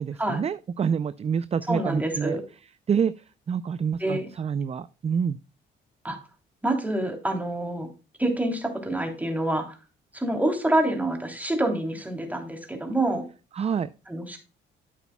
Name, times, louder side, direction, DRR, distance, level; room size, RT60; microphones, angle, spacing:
voice 1, 0.0-2.4 2.9-5.4 13.5-13.9, right 7 dB, 30° right, 15 dB, 0.4 m, -27 dB
voice 2, 1.7-2.4 4.0-4.3 6.0-6.2 6.6-7.9 8.2-9.8 10.1-13.2 14.1-14.4, right 1 dB, 10° right, 3 dB, 3.0 m, -27 dB
11.5 x 8.2 x 2.2 m, 0.32 s
cardioid pair, 90°, 20 cm